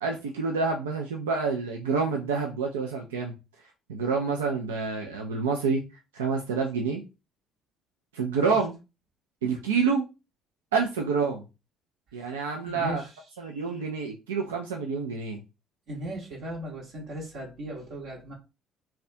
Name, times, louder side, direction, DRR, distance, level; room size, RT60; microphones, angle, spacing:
voice 1, 0.0-3.3 3.9-5.8 6.1-7.0 8.1-8.8 9.4-10.0 10.7-11.4 12.1-13.0 13.4-15.4, right 5 dB, 85° right, 1 dB, 0.4 m, -28 dB
voice 2, 12.6-13.1 13.4-13.8 15.9-18.3, right 1 dB, 60° right, -2 dB, 0.8 m, -37 dB
2.4 x 2.2 x 2.5 m, 0.27 s
hypercardioid pair, 55°, 0 cm